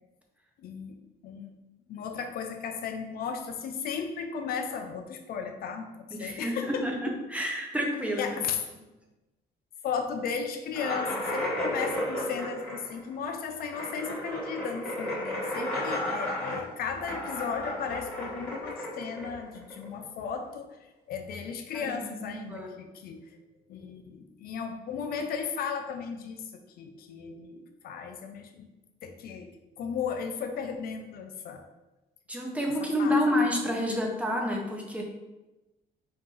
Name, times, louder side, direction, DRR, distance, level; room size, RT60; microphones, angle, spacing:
voice 1, 0.6-1.5 1.9-7.1 8.2-8.6 9.8-20.8 21.1-23.4 23.7-28.7 29.0-29.5 29.8-31.6 33.0-33.4, left 6 dB, 60° left, 4 dB, 0.5 m, -35 dB
voice 2, 6.1-8.3 21.7-22.7 32.3-35.0, left 1 dB, 10° right, 0 dB, 0.6 m, -29 dB
sound 1, 10.7-20.1, left 1 dB, 10° left, 1.3 m, -33 dB
4.3 x 2.5 x 3.7 m, 1.1 s
cardioid pair, 130°, 17 cm